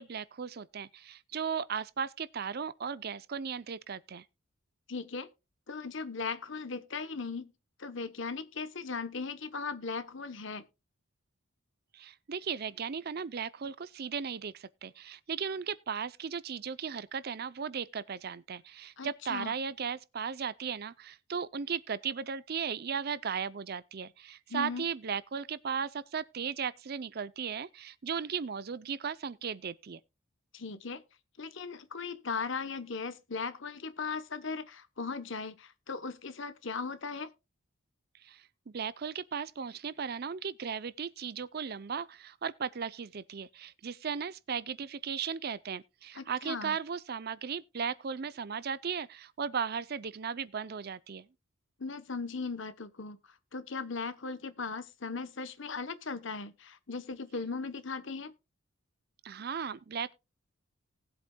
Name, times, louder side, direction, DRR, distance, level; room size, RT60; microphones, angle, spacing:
voice 1, 0.0-4.2 11.9-30.0 38.2-51.3 59.2-60.1, right 6 dB, 45° right, 0.5 m, -36 dB
voice 2, 4.9-5.3 5.7-7.5 7.8-10.6 19.0-19.5 24.5-24.8 30.5-31.0 31.4-37.3 46.2-46.8 51.8-53.2 53.5-58.3, left 4 dB, 55° left, 0.9 m, -38 dB
19.0 x 7.9 x 2.2 m
head